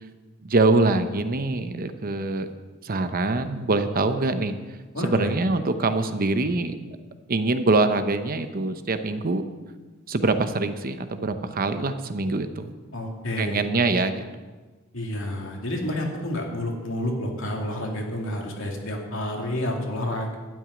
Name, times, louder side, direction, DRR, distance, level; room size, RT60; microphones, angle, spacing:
voice 1, 0.4-2.5 2.8-4.5 5.0-6.8 7.3-9.4 10.1-12.7 13.4-14.2, right 3 dB, 45° right, 9 dB, 0.8 m, -24 dB
voice 2, 4.9-5.3 12.9-13.7 14.9-20.4, left 1 dB, 65° left, 0 dB, 2.6 m, -29 dB
12.5 x 6.3 x 9.4 m, 1.3 s
head